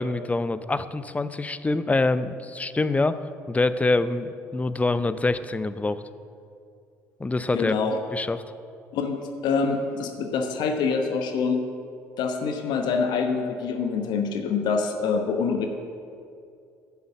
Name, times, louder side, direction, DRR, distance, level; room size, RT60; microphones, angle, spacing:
voice 1, 0.0-3.2 3.5-6.0 7.2-7.7 8.1-8.4, left 2 dB, 15° left, 13 dB, 0.6 m, -25 dB
voice 2, 7.5-8.0 8.9-11.6 12.2-15.7, left 5 dB, 60° left, 5 dB, 1.0 m, -25 dB
10.5 x 7.2 x 7.3 m, 2.5 s
figure-of-eight pair, 55°, 8 cm